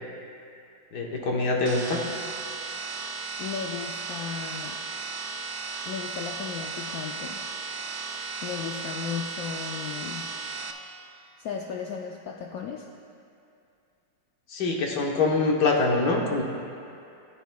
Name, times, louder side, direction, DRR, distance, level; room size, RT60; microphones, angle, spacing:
voice 1, 0.9-2.0 14.5-16.4, left 3 dB, 65° left, 0 dB, 1.4 m, -24 dB
sound 1, 1.7-10.7, right 4 dB, 70° right, 1.1 m, -35 dB
voice 2, 3.4-4.8 5.9-7.4 8.4-10.3 11.4-12.9, left 6 dB, 85° left, 1 dB, 0.7 m, -35 dB
14.0 x 9.3 x 2.2 m, 2.6 s
omnidirectional pair, 2.1 m